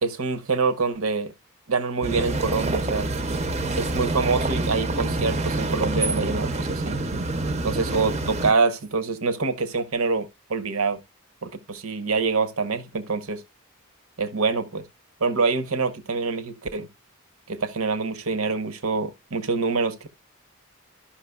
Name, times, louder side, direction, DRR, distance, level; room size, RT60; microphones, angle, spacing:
voice 1, 0.0-1.3 1.7-3.1 3.8-7.0 7.6-11.0 11.4-13.4 14.2-14.8 15.2-16.9 17.5-20.1, right 4 dB, 80° right, 0.9 m, -25 dB
sound 1, 2.0-8.5, right 2 dB, 30° right, 0.6 m, -27 dB
13.0 x 5.8 x 2.3 m
head